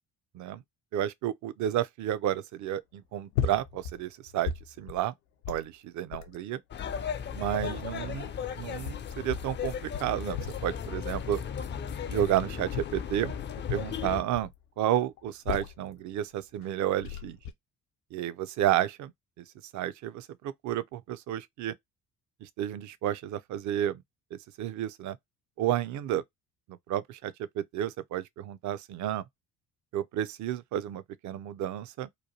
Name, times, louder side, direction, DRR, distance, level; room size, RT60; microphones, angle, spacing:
voice 1, 0.9-4.5 4.8-5.1 5.5-6.6 7.3-8.3 8.6-11.4 12.1-13.3 13.7-14.5 14.8-17.4 18.1-19.1 19.4-19.5 19.7-21.8 22.4-24.0 24.3-25.2 25.6-26.2 26.9-29.2 29.9-32.1, right 12 dB, 45° right, 0.4 m, -31 dB
sound 1, 3.3-4.0 4.3-5.1 5.4-5.7 6.1-6.4 7.0-8.0 8.7-9.5 9.9-10.7 11.1-11.4 12.2-13.0 13.6-14.6 15.2-15.9 16.6-16.7 17.0-17.5, left 8 dB, 80° left, 0.6 m, -36 dB
sound 2, 6.7-14.2, left 7 dB, 25° left, 0.4 m, -36 dB
3.0 x 2.2 x 2.6 m
hypercardioid pair, 50°, 44 cm